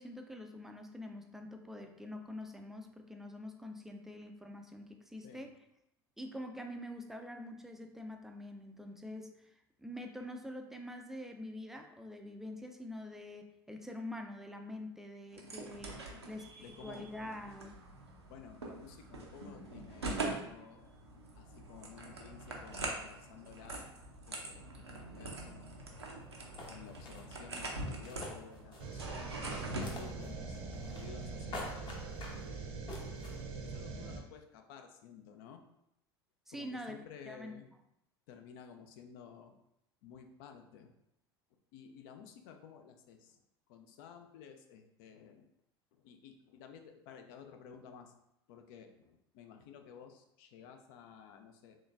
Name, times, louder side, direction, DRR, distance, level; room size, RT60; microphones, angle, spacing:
voice 1, 0.0-5.5 6.2-9.5 9.8-17.8 36.5-37.0 37.2-37.5, left 1 dB, 5° right, 4 dB, 0.4 m, -45 dB
sound 1, 15.3-29.9, right 2 dB, 85° right, 0.6 m, -43 dB
voice 2, 16.6-17.1 18.3-20.9 21.3-23.9 24.2-25.8 26.7-31.9 33.7-35.6 36.5-37.7 38.3-39.5 40.0-40.9 41.7-43.4 43.7-45.5 45.9-48.1 48.5-51.8, left 7 dB, 55° left, 6 dB, 0.5 m, -54 dB
sound 2, 26.2-26.3 26.6-27.2 27.9-29.0 29.3-30.3 30.5-31.2 31.5-32.4 32.9-33.3, left 2 dB, 35° left, 0.9 m, -45 dB
sound 3, 28.8-34.2, right 4 dB, 45° right, 0.7 m, -43 dB
3.8 x 3.1 x 2.5 m, 0.80 s
figure-of-eight pair, 75°, 13 cm